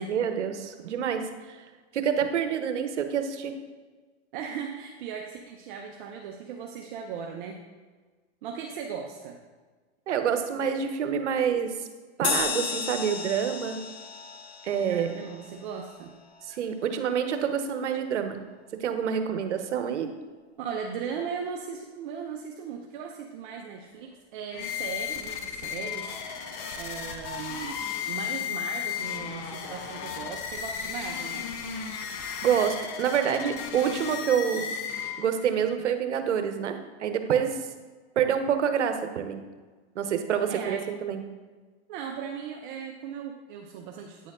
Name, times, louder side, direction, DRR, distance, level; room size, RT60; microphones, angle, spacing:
voice 1, 0.1-1.6 1.9-3.5 10.1-11.7 12.2-13.8 14.6-15.2 16.5-18.4 18.8-20.1 32.0-32.1 32.4-34.7 35.2-37.7 38.2-39.4 39.9-41.2, right 8 dB, 90° right, 8 dB, 0.9 m, -27 dB
voice 2, 4.3-7.6 8.4-9.4 14.9-16.1 20.6-31.5 40.5-40.8 41.9-44.3, right 6 dB, 45° right, 1 dB, 0.7 m, -38 dB
sound 1, 12.2-17.1, left 6 dB, 65° left, 0.9 m, -34 dB
sound 2, 24.5-35.5, left 7 dB, 35° left, 0.7 m, -35 dB
9.0 x 4.3 x 3.7 m, 1.4 s
hypercardioid pair, 135°, 34 cm